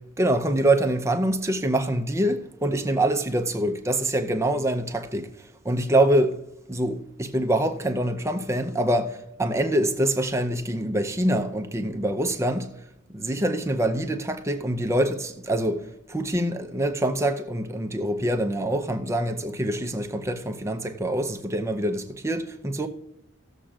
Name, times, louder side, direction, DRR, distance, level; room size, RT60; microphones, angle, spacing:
voice 1, 0.2-5.3 5.6-6.4 6.7-12.7 13.1-22.9, right 1 dB, 15° right, 0.6 m, -25 dB
18.0 x 7.1 x 2.5 m
head